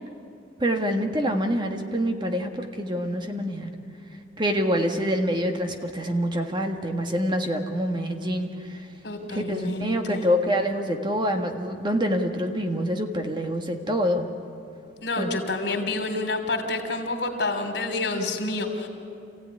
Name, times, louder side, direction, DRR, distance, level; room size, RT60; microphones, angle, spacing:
voice 1, 0.6-3.7 4.4-8.8 9.3-14.3 15.2-15.3, equal, 25° right, 4 dB, 1.6 m, -26 dB
voice 2, 9.0-10.3 15.0-18.9, left 2 dB, 70° left, 4 dB, 3.1 m, -28 dB
27.5 x 15.5 x 9.8 m, 2.5 s
head